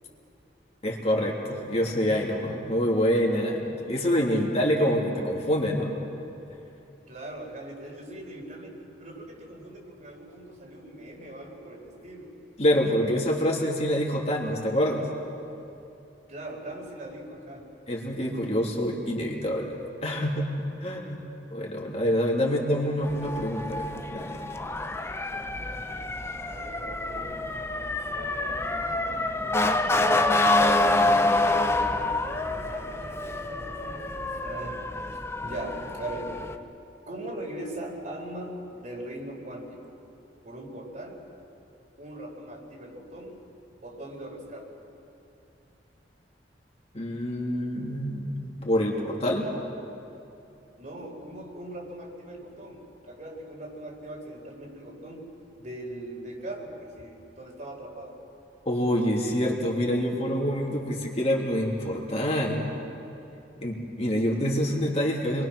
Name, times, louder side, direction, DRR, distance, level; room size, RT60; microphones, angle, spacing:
voice 1, 0.8-3.6 3.9-5.9 12.6-15.1 17.9-20.5 20.8-21.2 21.5-24.5 46.9-49.5 58.6-62.7 63.6-65.4, equal, 35° left, -2 dB, 3.0 m, -26 dB
voice 2, 3.7-4.5 7.1-12.4 16.3-17.7 20.9-21.3 22.4-22.5 22.9-23.6 26.4-28.8 30.9-34.8 35.1-36.4 37.1-39.8 40.4-41.3 42.0-43.4 43.8-44.7 50.8-58.2, right 1 dB, 45° right, 0 dB, 4.5 m, -41 dB
Motor vehicle (road) / Siren, 23.0-36.6, left 2 dB, 15° left, 0.8 m, -27 dB
29.0 x 23.0 x 6.3 m, 2.8 s
head